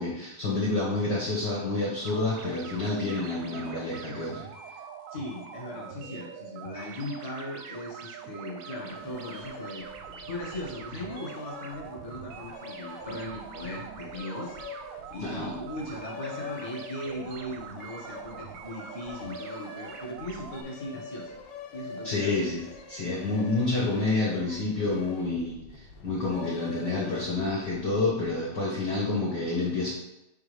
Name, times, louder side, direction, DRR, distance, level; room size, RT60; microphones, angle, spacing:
voice 1, 0.0-4.4 15.2-15.5 22.0-22.6 22.9-29.9, left 2 dB, 55° left, -5 dB, 1.2 m, -28 dB
sound 1, 2.0-20.6, right 8 dB, 80° right, 1.7 m, -44 dB
voice 2, 5.1-9.8 10.3-14.5 15.1-21.3 21.7-22.4, left 1 dB, 35° left, -2 dB, 1.1 m, -38 dB
sound 2, 8.9-28.3, left 5 dB, 90° left, 1.2 m, -45 dB
5.8 x 3.7 x 5.0 m, 0.91 s
omnidirectional pair, 3.6 m